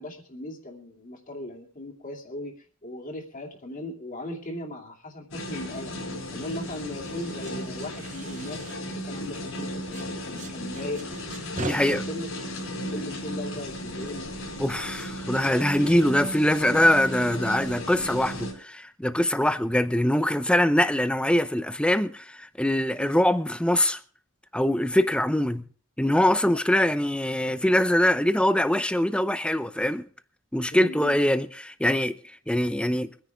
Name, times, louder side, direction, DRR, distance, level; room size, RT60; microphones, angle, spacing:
voice 1, 0.0-5.9 6.3-8.7 8.9-11.0 11.6-12.3 12.9-14.3 23.0-23.1 30.7-31.2, left 1 dB, 40° left, 2.6 m, -37 dB
sound 1, 5.3-18.5, equal, 75° left, 4.9 m, -35 dB
sound 2, 6.4-9.6 9.9-11.7, right 3 dB, 40° right, 0.8 m, -42 dB
voice 2, 11.6-12.0 14.6-24.0 24.5-25.6 26.0-30.1 30.5-32.2 32.5-33.1, left 1 dB, 5° left, 0.6 m, -23 dB
24.0 x 10.0 x 3.5 m
head